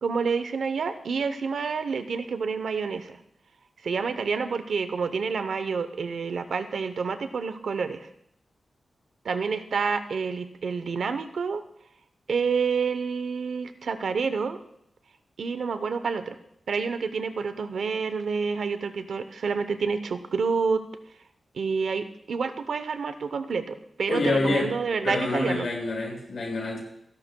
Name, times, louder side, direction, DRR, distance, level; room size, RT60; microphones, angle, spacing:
voice 1, 0.0-3.2 3.8-8.1 9.2-11.6 12.3-14.6 15.4-16.4 16.7-20.8 21.6-25.7, right 5 dB, 75° right, 10 dB, 0.7 m, -28 dB
voice 2, 24.1-24.7 25.0-26.8, left 2 dB, 60° left, -3 dB, 5.9 m, -27 dB
27.5 x 11.5 x 2.2 m, 0.73 s
wide cardioid pair, 150°, 0 cm